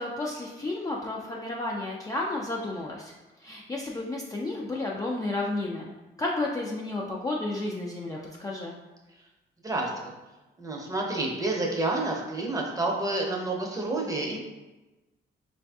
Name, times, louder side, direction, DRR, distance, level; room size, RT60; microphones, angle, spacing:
voice 1, 0.0-3.1 3.4-5.9 6.2-8.7, left 2 dB, 20° left, -2 dB, 0.3 m, -32 dB
voice 2, 9.6-10.1 10.6-14.4, right 2 dB, 15° right, -1 dB, 0.6 m, -29 dB
3.9 x 2.6 x 2.3 m, 1.1 s
cardioid pair, 90°, 20 cm